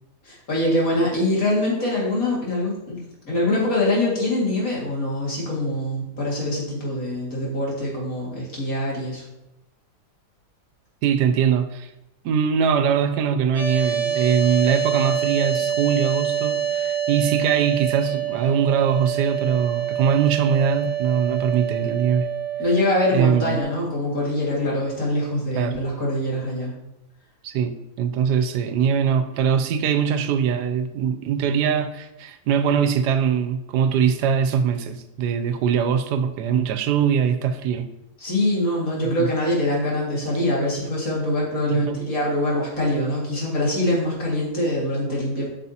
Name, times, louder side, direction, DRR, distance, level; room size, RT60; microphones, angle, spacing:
voice 1, 0.2-9.2 22.6-26.7 38.2-45.5, left 1 dB, 55° left, 2.5 m, -24 dB
voice 2, 11.0-11.9 12.2-22.3 23.1-23.6 25.5-25.8 27.4-37.9 39.2-39.3 41.7-42.0, right 7 dB, 85° right, 1.2 m, -22 dB
sound 1, 13.5-23.6, right 9 dB, 35° right, 2.5 m, -26 dB
8.2 x 6.1 x 2.8 m
omnidirectional pair, 1.7 m